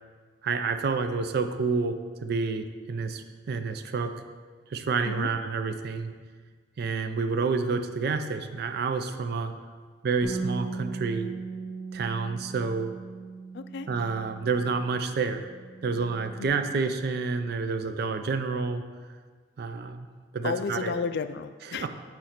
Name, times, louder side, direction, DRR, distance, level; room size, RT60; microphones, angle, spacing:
voice 1, 0.4-4.1 4.7-6.1 6.8-9.5 10.0-11.3 11.9-12.9 13.9-15.5 15.8-18.8 19.6-20.1 20.3-20.9 21.7-21.9, right 4 dB, 60° right, 8 dB, 0.4 m, -29 dB
Bass guitar, 10.2-14.9 15.2-16.5, right 4 dB, 5° left, 1.2 m, -38 dB
voice 2, 13.5-13.9 16.4-16.8 20.4-21.9, left 5 dB, 60° left, 11 dB, 0.3 m, -33 dB
8.7 x 3.1 x 4.4 m, 1.5 s
head